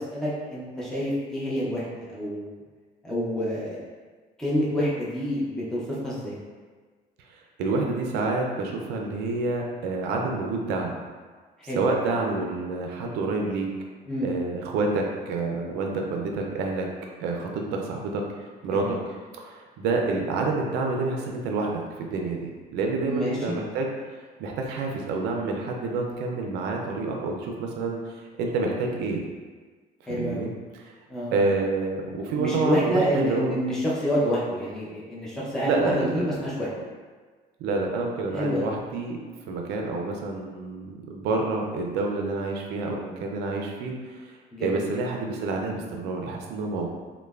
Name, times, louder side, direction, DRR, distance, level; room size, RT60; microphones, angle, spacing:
voice 1, 0.0-2.5 3.0-3.8 4.4-6.4 11.6-11.8 14.1-14.3 18.7-18.9 23.0-23.5 30.1-30.5 31.1-31.4 32.4-36.7 38.3-38.7 44.5-44.8, equal, 5° left, -7 dB, 0.5 m, -28 dB
voice 2, 7.3-11.0 11.7-13.7 14.2-16.9 17.2-23.9 24.2-29.2 30.1-30.9 31.3-33.5 35.6-36.4 37.6-39.2 39.5-46.9, right 3 dB, 85° right, 1 dB, 0.4 m, -28 dB
3.0 x 2.1 x 2.3 m, 1.4 s
cardioid pair, 110°, 17 cm